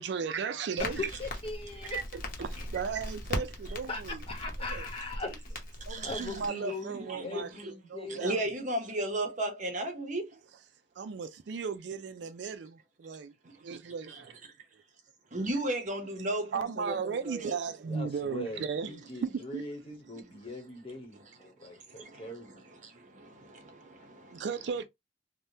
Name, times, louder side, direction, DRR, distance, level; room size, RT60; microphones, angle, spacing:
voice 1, 0.0-1.0 1.9-4.2 4.7-4.9 5.9-8.4 11.0-13.3 13.6-14.3 16.5-19.6 24.3-24.8, right 6 dB, 65° right, 0.4 m, -36 dB
Crackle, 0.8-6.5, left 1 dB, 50° left, 0.8 m, -39 dB
voice 2, 0.8-2.0 2.6-2.7 3.9-5.6 6.0-8.6 17.8-22.6, left 2 dB, 30° left, 1.1 m, -40 dB
voice 3, 5.9-6.2 6.6-7.7 8.1-10.3 14.1-14.2 15.3-17.6 21.1-21.2 21.9-24.5, right 1 dB, 45° right, 0.8 m, -35 dB
3.3 x 2.1 x 2.7 m
head